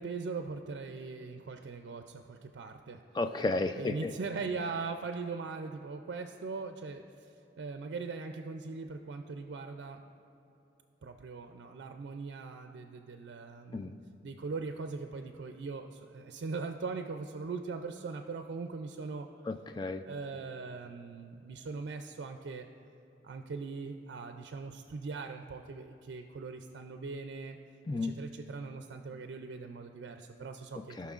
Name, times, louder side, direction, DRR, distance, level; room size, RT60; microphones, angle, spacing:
voice 1, 0.0-3.0 3.8-10.0 11.0-13.9 14.2-19.3 20.0-22.7 23.2-27.6 28.0-31.1, right 4 dB, 85° right, 6 dB, 0.4 m, -40 dB
voice 2, 3.1-4.1 13.7-13.9 19.5-20.0 27.9-28.1 31.0-31.1, left 3 dB, 25° left, 8 dB, 0.3 m, -33 dB
16.5 x 5.8 x 2.4 m, 2.9 s
head